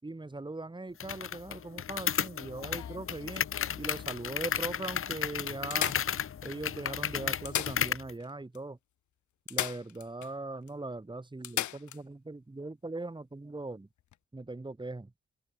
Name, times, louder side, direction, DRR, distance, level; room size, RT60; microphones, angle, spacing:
voice 1, 0.0-3.5 3.8-5.9 6.4-8.8 9.5-13.9 14.3-15.1, right 2 dB, 15° right, 5.7 m, -40 dB
sound 1, 1.0-8.1, left 8 dB, 45° left, 1.3 m, -34 dB
sound 2, 2.2-3.8 4.5-4.6 4.9-5.0 5.7-6.7 7.3-8.3 8.6-8.7 9.5-10.3 10.7-10.8 11.4-12.0 14.0-14.2, left 12 dB, 70° left, 2.5 m, -37 dB
open air
cardioid pair, 90°, 30 cm